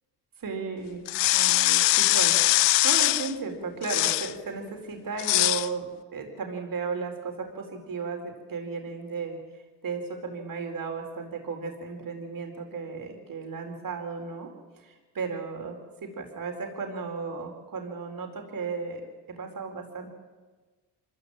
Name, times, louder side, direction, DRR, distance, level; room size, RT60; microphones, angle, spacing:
voice 1, 0.4-1.1 1.3-19.0 19.3-20.1, right 4 dB, 50° right, 3 dB, 4.3 m, -35 dB
sound 1, 1.1-3.3 3.8-4.3 5.2-5.7, left 19 dB, 70° left, 0.7 m, -22 dB
24.5 x 15.0 x 8.8 m, 1.3 s
supercardioid pair, 65°, 44 cm